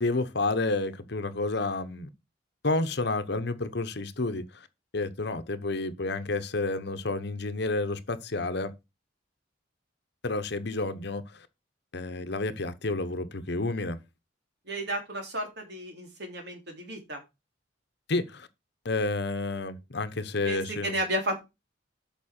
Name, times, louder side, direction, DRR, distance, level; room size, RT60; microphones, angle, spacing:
voice 1, 0.0-2.1 2.6-4.7 4.9-8.7 10.2-11.5 11.9-14.0 18.1-18.5 18.8-21.0, left 2 dB, 60° left, 1.0 m, -30 dB
voice 2, 14.7-17.2 20.4-21.4, right 1 dB, 65° right, 3.2 m, -33 dB
8.6 x 5.9 x 4.5 m
head